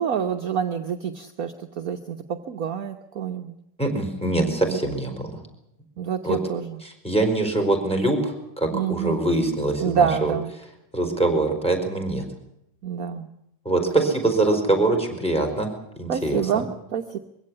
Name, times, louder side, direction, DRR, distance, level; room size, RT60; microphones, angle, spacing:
voice 1, 0.0-3.5 4.7-4.8 6.0-6.8 8.7-9.2 9.8-10.5 12.8-13.3 16.1-17.2, right 8 dB, 55° right, 5 dB, 1.4 m, -27 dB
voice 2, 3.8-5.4 6.2-6.4 7.0-10.3 10.9-12.3 13.6-15.7 16.0-16.6, right 2 dB, 5° left, 5 dB, 4.6 m, -23 dB
22.5 x 16.5 x 9.9 m, 0.82 s
omnidirectional pair, 2.0 m